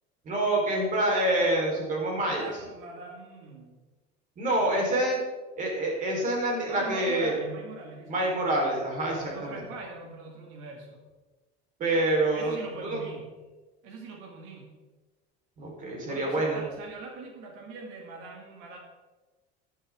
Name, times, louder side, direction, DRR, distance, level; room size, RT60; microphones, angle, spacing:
voice 1, 0.2-2.5 4.4-5.2 5.6-7.3 8.1-9.6 11.8-12.6 12.8-13.0 15.6-16.6, right 1 dB, 40° right, -1 dB, 4.5 m, -26 dB
voice 2, 2.1-3.8 4.6-4.8 6.7-8.4 9.1-11.0 12.3-13.3 13.8-14.8 16.1-18.8, right 3 dB, 70° right, 1 dB, 2.6 m, -42 dB
14.5 x 10.0 x 3.8 m, 1.2 s
cardioid pair, 145°, 21 cm